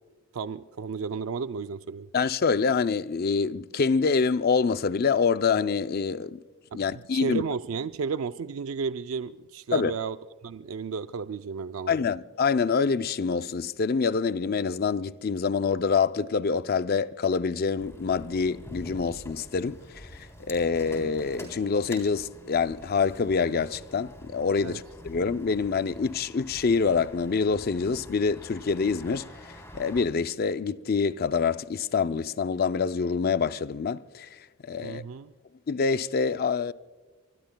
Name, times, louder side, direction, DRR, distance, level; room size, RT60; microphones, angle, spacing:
voice 1, 0.3-2.1 6.7-10.2 10.4-12.0 24.6-24.8 34.8-35.3, right 5 dB, 70° right, 0.4 m, -33 dB
voice 2, 2.1-6.4 6.7-7.4 9.7-9.9 11.9-35.0 35.7-36.7, left 5 dB, 45° left, 0.4 m, -26 dB
sound 1, 17.8-30.0, equal, 15° left, 3.5 m, -46 dB
25.0 x 24.0 x 2.3 m
head